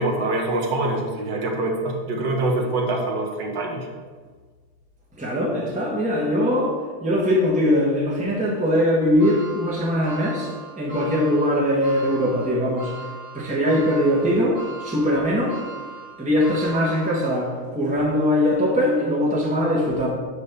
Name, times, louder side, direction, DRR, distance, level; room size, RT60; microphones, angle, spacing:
voice 1, 0.0-3.9, right 2 dB, 60° right, 1 dB, 1.7 m, -24 dB
voice 2, 5.2-12.9 13.3-15.6 16.2-20.1, equal, 5° right, -5 dB, 1.3 m, -21 dB
sound 1, 9.2-17.6 18.1-18.2 19.3-19.4, right 4 dB, 85° right, 2.5 m, -39 dB
5.5 x 5.4 x 6.7 m, 1.5 s
omnidirectional pair, 2.3 m